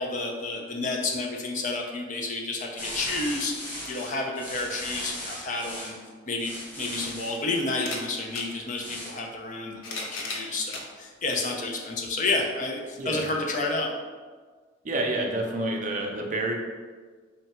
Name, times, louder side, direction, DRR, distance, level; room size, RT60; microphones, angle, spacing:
voice 1, 0.0-3.5 3.9-5.9 6.3-13.9, left 2 dB, 40° left, 0 dB, 0.5 m, -30 dB
sound 1, 2.8-5.9 6.4-7.4 8.7-9.2, left 1 dB, 10° left, 1.1 m, -37 dB
sound 2, 6.3-6.4 7.7-8.5 9.5-10.9 11.6-11.7 13.0-13.1, left 3 dB, 85° left, 0.6 m, -36 dB
voice 2, 14.8-16.5, right 2 dB, 40° right, 1 dB, 0.5 m, -28 dB
3.7 x 2.2 x 4.2 m, 1.5 s
head